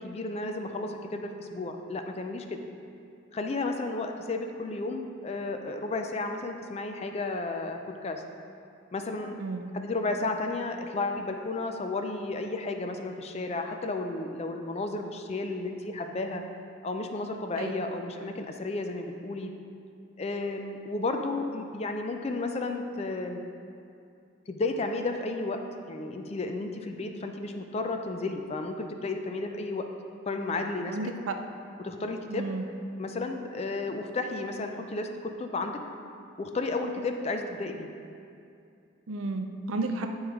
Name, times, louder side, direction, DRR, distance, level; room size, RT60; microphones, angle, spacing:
voice 1, 0.0-2.6 3.3-8.2 8.9-9.4 9.7-16.4 16.8-19.5 20.2-23.4 24.5-25.6 25.9-29.9 30.3-31.0 31.8-32.5 33.0-35.8 36.4-37.9, left 3 dB, 30° left, 5 dB, 0.4 m, -33 dB
voice 2, 32.3-32.6 39.1-40.1, right 2 dB, 85° right, 5 dB, 0.5 m, -32 dB
9.0 x 3.1 x 4.8 m, 2.5 s
head